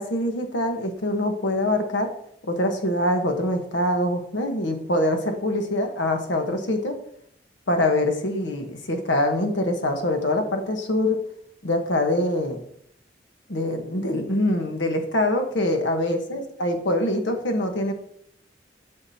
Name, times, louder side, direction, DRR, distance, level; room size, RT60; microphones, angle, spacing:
voice 1, 0.0-2.1 2.4-7.0 7.7-11.2 11.6-12.6 13.5-17.9, left 1 dB, 80° left, 5 dB, 1.2 m, -24 dB
8.8 x 5.8 x 2.8 m, 0.68 s
head